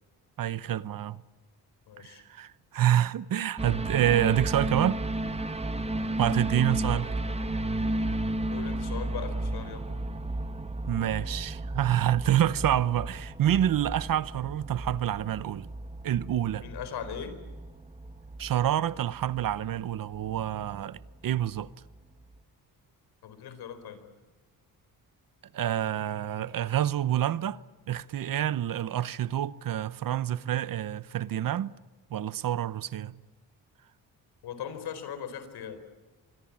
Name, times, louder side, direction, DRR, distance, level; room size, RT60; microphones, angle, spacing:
voice 1, 0.4-1.2 2.0-5.0 6.2-7.1 10.9-15.7 16.0-16.7 18.4-21.7 25.5-27.6 27.9-31.7 32.1-33.1, right 11 dB, 60° right, 0.9 m, -27 dB
voice 2, 1.9-2.2 7.0-7.7 8.5-9.9 16.6-17.3 23.2-24.0 34.4-35.8, left 8 dB, 80° left, 4.4 m, -40 dB
sound 1, 3.6-22.0 22.3-22.4, right 1 dB, 15° right, 1.5 m, -34 dB
25.5 x 22.5 x 8.7 m
cardioid pair, 95°, 38 cm